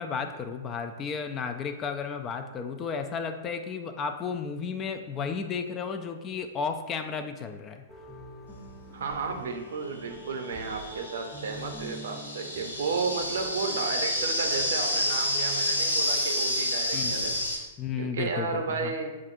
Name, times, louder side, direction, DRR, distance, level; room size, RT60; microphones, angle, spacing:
voice 1, 0.0-7.8 16.9-17.1 17.8-18.9, left 6 dB, 30° left, 7 dB, 0.4 m, -33 dB
sound 1, 7.9-15.1, equal, 10° left, 0.9 m, -45 dB
voice 2, 8.9-17.3 18.0-19.2, right 4 dB, 70° right, 5 dB, 0.6 m, -33 dB
sound 2, 9.1-9.2 10.1-17.6, left 1 dB, 90° left, 0.7 m, -29 dB
7.1 x 2.5 x 2.5 m, 1.2 s
hypercardioid pair, 110°, 0 cm